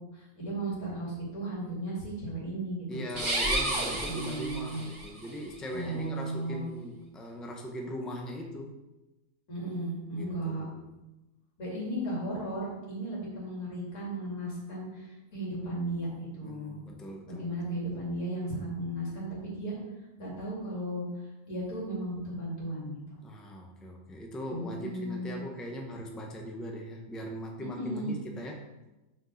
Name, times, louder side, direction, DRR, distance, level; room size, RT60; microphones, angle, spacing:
voice 1, 0.0-3.0 4.0-4.8 5.7-6.6 9.5-10.6 11.6-16.8 17.2-19.8 20.2-21.1 21.4-23.1 24.5-25.4 27.6-28.2, right 1 dB, 80° left, -5 dB, 3.4 m, -35 dB
voice 2, 2.9-8.7 10.1-10.8 16.4-17.8 23.2-28.6, equal, ahead, 1 dB, 0.8 m, -40 dB
sound 1, 3.1-5.1, right 1 dB, 35° right, 1.9 m, -31 dB
6.0 x 5.2 x 6.5 m, 1.0 s
omnidirectional pair, 1.5 m